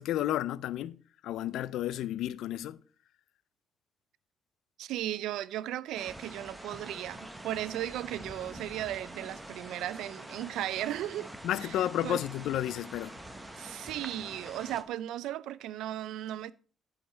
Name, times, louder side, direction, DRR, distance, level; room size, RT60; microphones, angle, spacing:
voice 1, 0.0-2.8 11.4-13.2, left 12 dB, 85° left, 0.4 m, -32 dB
voice 2, 4.8-11.3 11.6-12.2 13.6-16.5, right 13 dB, 90° right, 0.4 m, -36 dB
sound 1, 5.9-14.8, right 1 dB, 10° right, 1.2 m, -46 dB
11.5 x 4.9 x 4.5 m
cardioid pair, 90°, 0 cm